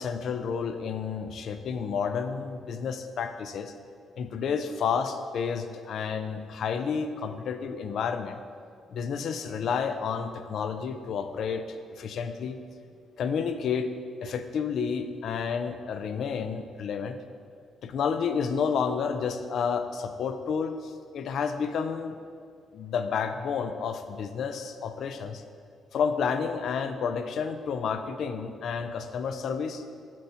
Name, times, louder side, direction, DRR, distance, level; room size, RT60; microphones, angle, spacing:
voice 1, 0.0-3.7 4.2-8.4 8.9-11.6 11.9-12.6 13.2-13.9 14.2-17.2 17.8-22.2 22.7-25.4 25.9-29.8, left 6 dB, 65° left, 9 dB, 0.4 m, -30 dB
7.4 x 5.6 x 2.8 m, 2.2 s
cardioid pair, 90°, 0 cm